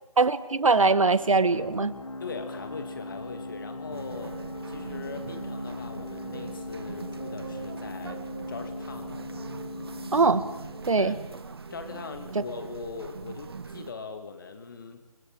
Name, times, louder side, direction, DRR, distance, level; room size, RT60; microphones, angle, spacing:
voice 1, 0.2-1.9 10.1-10.5 10.9-11.2, right 4 dB, 60° right, 13 dB, 1.9 m, -22 dB
sound 1, 0.8-12.1, left 2 dB, 60° left, 2.2 m, -40 dB
voice 2, 2.2-8.2 8.5-9.1 11.0-11.3 11.7-15.0, left 4 dB, 35° left, 8 dB, 2.7 m, -40 dB
sound 2, 3.9-13.9, right 5 dB, 40° right, 1.4 m, -42 dB
28.5 x 26.5 x 7.7 m, 1.1 s
figure-of-eight pair, 170°, 19 cm